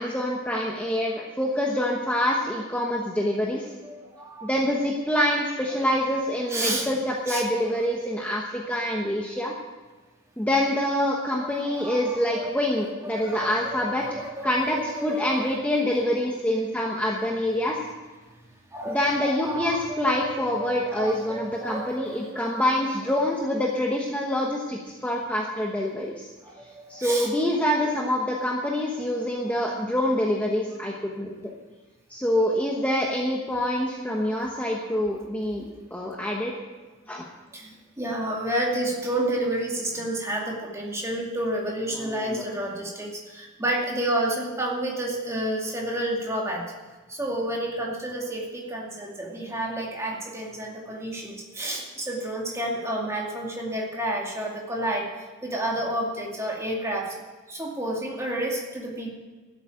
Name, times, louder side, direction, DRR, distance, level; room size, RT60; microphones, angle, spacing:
voice 1, 0.0-3.6 4.4-9.5 10.4-14.0 14.4-17.8 18.9-26.3 26.9-31.3 32.1-35.6 35.9-36.5 37.1-37.3 42.0-42.4, left 1 dB, 5° left, -2 dB, 1.1 m, -26 dB
voice 2, 3.8-4.5 5.8-5.9 6.5-6.9 7.3-7.4 11.4-15.9 18.7-22.4 26.4-27.3 37.5-46.7 47.1-57.2 57.5-59.1, right 1 dB, 15° right, -2 dB, 2.3 m, -30 dB
12.5 x 8.1 x 9.3 m, 1.3 s
head